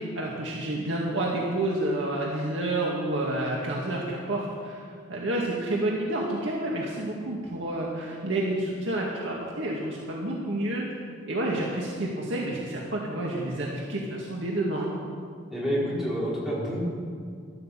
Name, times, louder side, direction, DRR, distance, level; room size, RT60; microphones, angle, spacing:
voice 1, 0.0-10.9 11.3-15.0, right 1 dB, 80° right, -3 dB, 1.9 m, -29 dB
voice 2, 15.5-16.8, equal, ahead, -8 dB, 4.9 m, -28 dB
12.5 x 12.5 x 7.5 m, 2.2 s
head